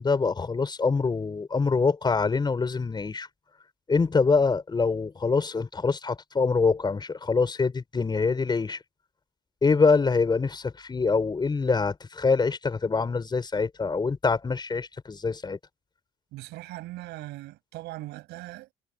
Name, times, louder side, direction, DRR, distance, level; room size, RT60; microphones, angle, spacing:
voice 1, 0.0-3.3 3.9-8.8 9.6-15.6, left 4 dB, 25° left, 5.6 m, -25 dB
voice 2, 16.3-18.7, right 18 dB, 85° right, 6.8 m, -40 dB
cardioid pair, 110°, 17 cm